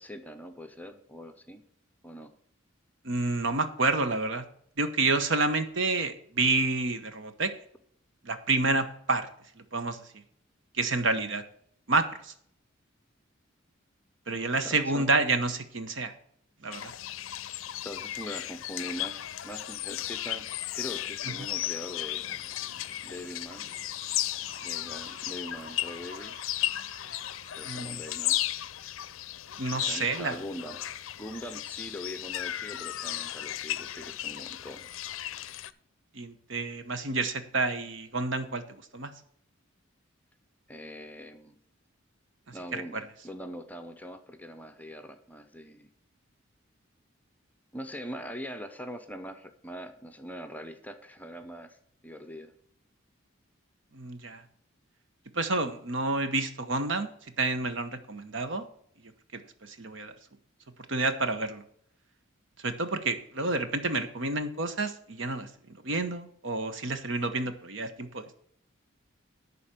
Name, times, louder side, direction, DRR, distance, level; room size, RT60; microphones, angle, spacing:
voice 1, 0.0-1.6 2.0-2.3 14.6-15.1 17.8-20.5 20.8-22.2 23.0-23.7 24.6-26.3 27.5-28.4 29.7-30.8 31.2-34.9 40.7-41.6 42.5-45.9 47.7-51.8 52.0-52.5, equal, 10° left, 7 dB, 0.7 m, -42 dB
voice 2, 3.0-4.4 4.8-7.5 8.2-9.3 9.7-10.0 10.7-11.4 11.9-12.3 14.3-16.1 16.6-16.9 27.7-28.0 29.6-30.4 36.1-38.6 38.9-39.1 42.5-43.0 53.9-54.4 55.3-57.1 57.4-58.7 59.3-60.1 60.9-61.6 62.6-65.5 65.8-68.3, right 3 dB, 65° right, 9 dB, 1.0 m, -29 dB
sound 1, 16.7-35.7, left 13 dB, 75° left, 0.5 m, -35 dB
sound 2, 22.2-28.2, right 2 dB, 45° right, 1.9 m, -53 dB
11.0 x 4.2 x 7.4 m, 0.66 s
head